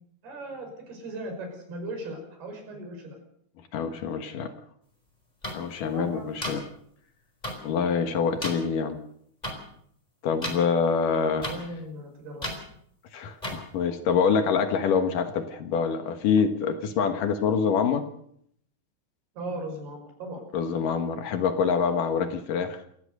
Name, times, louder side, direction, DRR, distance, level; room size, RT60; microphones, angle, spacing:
voice 1, 0.2-3.2 5.9-6.3 11.1-12.5 19.4-20.4, right 1 dB, 85° right, 4 dB, 7.6 m, -38 dB
voice 2, 3.7-4.5 5.5-6.6 7.6-9.0 10.2-11.5 13.1-18.1 20.5-22.8, left 6 dB, 65° left, 7 dB, 2.8 m, -25 dB
sound 1, 5.4-5.5 6.4-6.5 7.4-7.5 8.4-8.5 9.4-9.5 10.4-10.6 11.4-11.6 12.4-12.6 13.4-13.6, equal, 10° left, 4.3 m, -31 dB
28.0 x 14.0 x 6.6 m, 0.69 s
omnidirectional pair, 4.4 m